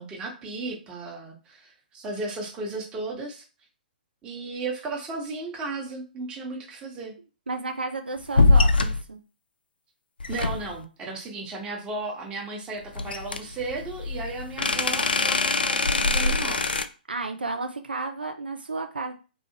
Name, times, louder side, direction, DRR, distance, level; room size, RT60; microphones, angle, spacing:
voice 1, 0.0-3.4 4.2-7.2 10.3-16.8, right 3 dB, 20° right, -1 dB, 0.9 m, -35 dB
voice 2, 7.5-9.2 17.1-19.1, right 3 dB, 80° right, 5 dB, 0.4 m, -32 dB
sound 1, 8.3-9.0 10.2-10.8 13.0-16.9, left 3 dB, 75° left, 0.3 m, -23 dB
2.7 x 2.4 x 2.8 m, 0.33 s
figure-of-eight pair, 125°, 5 cm